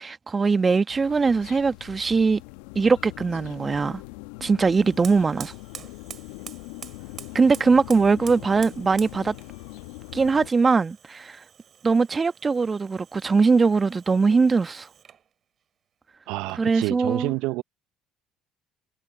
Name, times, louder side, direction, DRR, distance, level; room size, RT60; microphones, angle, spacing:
voice 1, 0.0-2.4 2.7-4.0 4.4-5.5 7.3-9.3 10.1-11.4 11.8-14.9 16.6-17.3, right 4 dB, 30° right, 1.2 m, -21 dB
sound 1, 0.9-10.5, left 24 dB, 75° left, 0.9 m, -42 dB
Fire, 4.7-15.3, right 8 dB, 50° right, 5.6 m, -47 dB
voice 2, 16.3-17.6, right 21 dB, 70° right, 0.7 m, -28 dB
hypercardioid pair, 60°, 0 cm